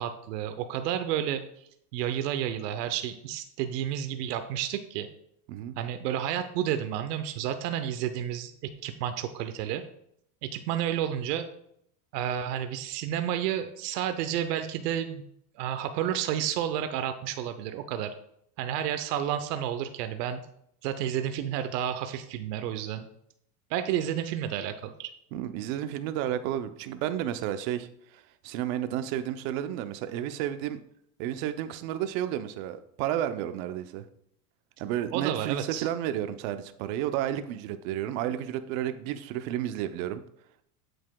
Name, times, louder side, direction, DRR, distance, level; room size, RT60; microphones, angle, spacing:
voice 1, 0.0-1.4 1.9-5.1 5.8-9.8 10.4-11.5 12.1-15.2 15.6-18.1 18.6-20.4 20.8-23.1 23.7-25.1 35.1-35.9, right 10 dB, 85° right, 9 dB, 0.8 m, -31 dB
voice 2, 25.3-30.8 31.2-34.0 34.8-40.2, right 11 dB, 60° right, 10 dB, 0.7 m, -32 dB
8.1 x 7.7 x 2.3 m, 0.72 s
supercardioid pair, 150°, 47 cm